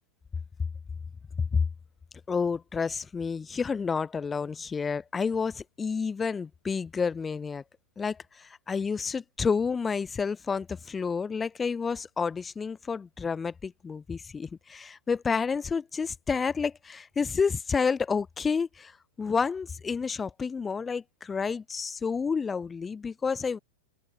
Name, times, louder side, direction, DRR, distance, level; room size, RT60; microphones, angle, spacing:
voice 1, 2.3-7.6 8.0-23.6, left 5 dB, 15° left, 2.3 m, -30 dB
open air
figure-of-eight pair, 95°, 0 cm